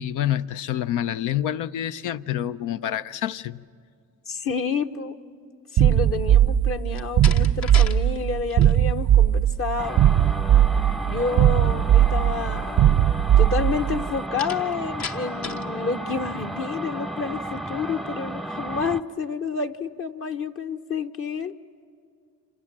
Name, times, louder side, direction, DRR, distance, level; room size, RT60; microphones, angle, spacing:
voice 1, 0.0-3.6, left 11 dB, 85° left, 0.6 m, -27 dB
voice 2, 4.3-5.2 5.7-10.0 11.0-13.0 13.4-21.5, left 5 dB, 45° left, 1.0 m, -29 dB
sound 1, 5.8-14.0, right 11 dB, 70° right, 0.7 m, -19 dB
Slam, 6.9-8.0 8.3-8.8 14.4-15.7, left 6 dB, 65° left, 1.3 m, -35 dB
sound 2, 9.8-19.0, right 1 dB, ahead, 0.6 m, -33 dB
29.0 x 26.5 x 7.4 m
cardioid pair, 90°, 30 cm